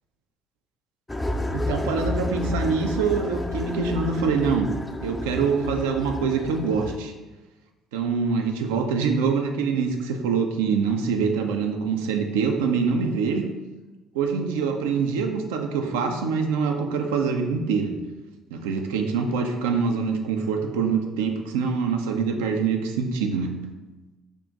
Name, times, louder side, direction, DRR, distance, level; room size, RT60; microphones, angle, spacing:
sound 1, 1.1-7.0, left 1 dB, 15° left, 0.3 m, -30 dB
voice 1, 1.5-4.7 5.0-7.1 7.9-13.5 14.1-17.9 18.5-23.5, right 5 dB, 65° right, 4 dB, 0.4 m, -25 dB
3.5 x 2.4 x 3.9 m, 1.2 s
figure-of-eight pair, 50°, 0 cm